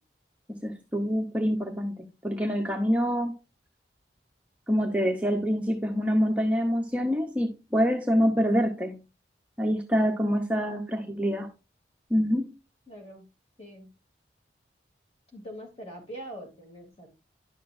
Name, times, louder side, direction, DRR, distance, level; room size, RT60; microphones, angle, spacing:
voice 1, 0.6-3.4 4.7-9.0 9.6-11.5 12.1-12.5, equal, 10° right, 2 dB, 0.7 m, -26 dB
voice 2, 12.9-13.2 13.6-13.9 15.3-17.1, right 1 dB, 35° left, 1 dB, 2.7 m, -43 dB
10.5 x 6.6 x 2.5 m, 0.27 s
head